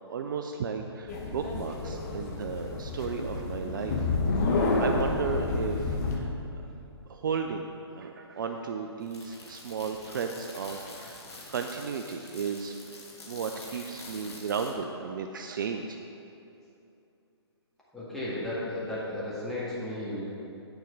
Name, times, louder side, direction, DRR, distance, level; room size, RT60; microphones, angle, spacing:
voice 1, 0.1-4.1 4.4-6.3 7.1-7.7 7.9-11.2 11.5-12.9 13.3-16.0, right 6 dB, 45° right, 5 dB, 0.4 m, -34 dB
sound 1, 1.1-6.2, left 3 dB, 35° left, 1.1 m, -29 dB
sound 2, 9.0-14.7, left 2 dB, 70° left, 1.6 m, -46 dB
voice 2, 17.9-20.3, left 1 dB, ahead, -10 dB, 1.8 m, -34 dB
9.5 x 4.4 x 5.2 m, 2.8 s
figure-of-eight pair, 135°, 14 cm